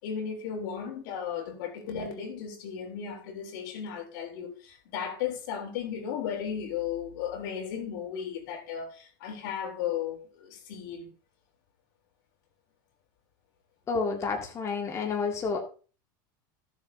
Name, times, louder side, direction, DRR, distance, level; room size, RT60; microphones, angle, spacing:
voice 1, 0.0-11.1, left 8 dB, 70° left, 3.6 m, -35 dB
voice 2, 13.9-15.6, left 4 dB, 25° left, 2.1 m, -30 dB
16.0 x 7.3 x 2.8 m
supercardioid pair, 120°, 11 cm